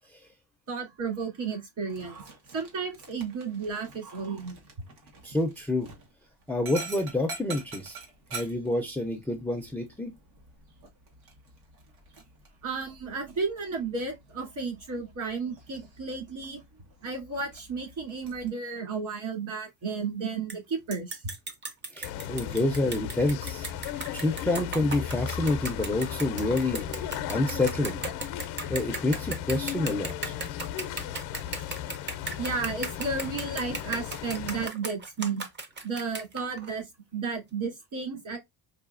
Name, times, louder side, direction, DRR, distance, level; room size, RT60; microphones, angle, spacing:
voice 1, 0.7-2.2 2.5-4.6 12.6-16.6 17.0-21.2 32.4-35.4 35.8-36.9 37.1-38.4, right 4 dB, 50° right, 2.9 m, -33 dB
Dog, 1.9-18.5, right 4 dB, 80° right, 1.7 m, -47 dB
voice 2, 5.2-5.9 6.5-8.0 8.3-10.1 21.9-23.7 24.1-28.0 28.7-30.4, left 2 dB, 5° left, 0.4 m, -28 dB
sound 1, 20.5-20.6 20.9-36.7, right 3 dB, 25° right, 0.7 m, -37 dB
sound 2, 22.0-34.7, left 10 dB, 75° left, 0.6 m, -36 dB
4.8 x 2.6 x 2.4 m
cardioid pair, 150°, 39 cm